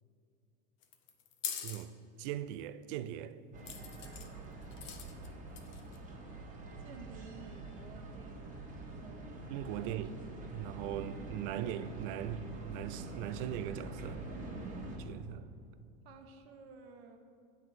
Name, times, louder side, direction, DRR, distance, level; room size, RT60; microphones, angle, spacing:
sound 1, 0.8-1.8 3.7-4.3 4.7-5.3 5.6-6.0, left 8 dB, 40° left, 0.7 m, -42 dB
voice 1, 2.2-3.4 9.5-10.1 10.5-14.2 15.0-15.5, right 11 dB, 60° right, 0.4 m, -40 dB
sound 2, 3.5-15.0, right 2 dB, 25° right, 1.3 m, -45 dB
voice 2, 6.8-8.7 9.0-9.4 9.8-10.1 16.0-17.2, right 5 dB, 80° right, 0.9 m, -53 dB
7.5 x 4.0 x 6.2 m
supercardioid pair, 115°, 30 cm